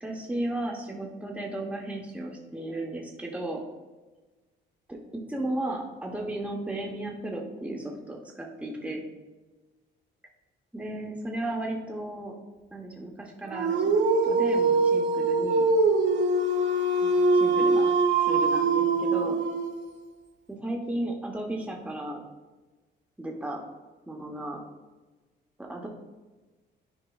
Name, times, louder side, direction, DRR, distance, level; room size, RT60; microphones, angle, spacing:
voice 1, 0.0-3.6 4.9-5.0 5.3-9.0 10.7-12.3 12.7-15.6 17.0-18.0 18.3-19.4 20.5-22.2 23.2-23.6 24.1-24.6 25.6-25.9, right 1 dB, 5° right, 0 dB, 0.9 m, -34 dB
Dog, 13.5-19.9, right 3 dB, 70° right, 0.8 m, -23 dB
10.0 x 4.7 x 2.3 m, 1.2 s
cardioid pair, 90°, 20 cm